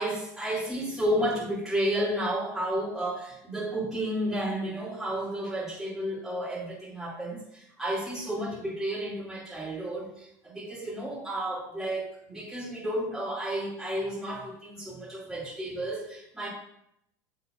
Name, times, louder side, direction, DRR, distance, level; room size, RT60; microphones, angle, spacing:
voice 1, 0.0-16.5, right 1 dB, 5° right, -9 dB, 2.5 m, -32 dB
9.1 x 6.7 x 2.5 m, 0.75 s
supercardioid pair, 105°, 9 cm